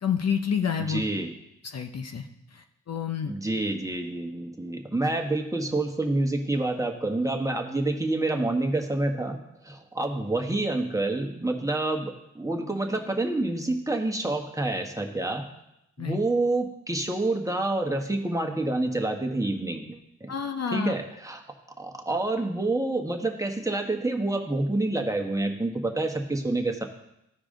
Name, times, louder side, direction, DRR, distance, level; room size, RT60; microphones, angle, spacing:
voice 1, 0.0-1.0 1.6-2.3 2.5-3.3 16.0-16.2 20.3-20.9, left 7 dB, 50° left, 5 dB, 0.8 m, -29 dB
voice 2, 0.9-1.3 3.3-15.5 16.0-20.3 20.7-21.4 21.8-26.8, right 2 dB, 10° right, 3 dB, 1.4 m, -28 dB
14.0 x 4.8 x 3.8 m, 0.82 s
supercardioid pair, 50°, 32 cm